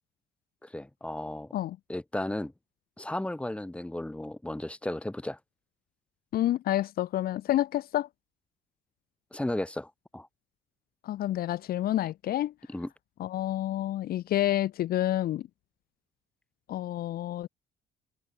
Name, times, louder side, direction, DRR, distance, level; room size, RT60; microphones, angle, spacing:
voice 1, 0.6-1.5 1.9-2.5 3.0-5.4 9.3-10.3 12.7-12.9, left 1 dB, 5° left, 5.1 m, -34 dB
voice 2, 6.3-8.1 11.0-12.5 13.2-15.4 16.7-17.5, left 13 dB, 65° left, 1.2 m, -29 dB
cardioid pair, 110°, 17 cm